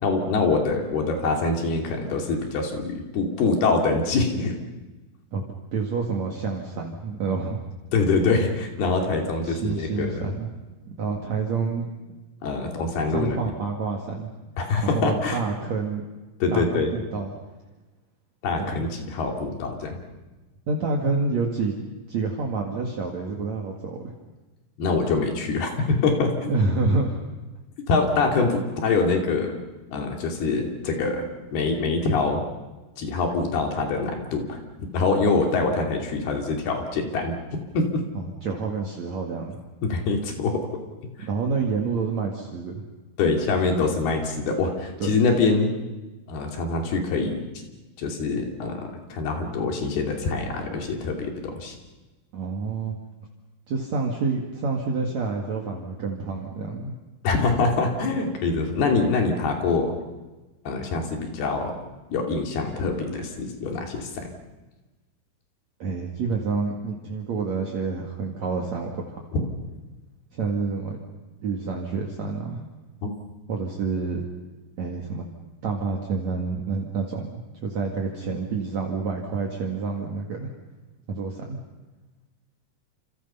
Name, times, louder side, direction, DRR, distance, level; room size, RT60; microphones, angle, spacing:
voice 1, 0.0-4.6 7.9-10.3 12.4-13.4 14.6-15.4 16.4-16.9 18.4-20.0 24.8-26.5 27.9-29.5 29.9-31.3 31.5-32.4 33.0-34.6 34.9-37.3 37.7-38.0 39.8-40.6 41.2-41.3 43.2-45.7 46.3-47.4 48.0-51.8 57.2-59.9 60.7-61.8 62.1-64.3 73.0-73.1, left 3 dB, 75° left, 2 dB, 4.7 m, -24 dB
voice 2, 5.3-7.6 9.4-10.5 10.8-11.9 12.6-12.8 13.1-14.3 14.8-16.0 16.5-17.3 18.6-18.8 20.7-24.0 26.5-27.2 38.1-39.6 41.2-42.8 45.0-45.1 52.3-52.9 53.7-56.9 65.8-69.5 70.3-71.0 71.4-72.7 73.5-74.2 74.8-75.2 75.6-80.5 81.1-81.4, right 4 dB, 50° right, 0 dB, 3.0 m, -28 dB
28.5 x 28.0 x 5.7 m, 1.2 s
omnidirectional pair, 4.5 m